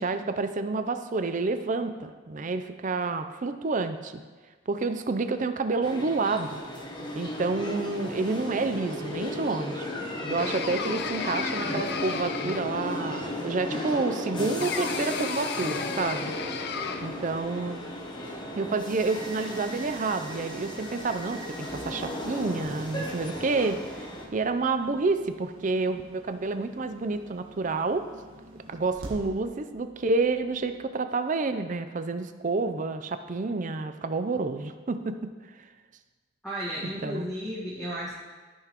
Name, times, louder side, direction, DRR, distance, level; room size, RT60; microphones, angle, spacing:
voice 1, 0.0-4.2 4.7-6.6 7.1-9.9 10.3-16.3 17.0-17.8 18.5-24.0 24.3-28.1 28.7-35.3 37.0-37.3, right 3 dB, 35° right, 9 dB, 0.4 m, -29 dB
sound 1, 5.8-24.3, left 1 dB, 20° left, 0.9 m, -35 dB
sound 2, 10.4-12.9 14.6-17.2, left 6 dB, 50° left, 0.4 m, -34 dB
sound 3, 19.8-30.9, right 1 dB, 90° right, 1.4 m, -50 dB
voice 2, 36.4-38.1, equal, ahead, -10 dB, 1.4 m, -33 dB
14.0 x 6.0 x 3.0 m, 1.4 s
head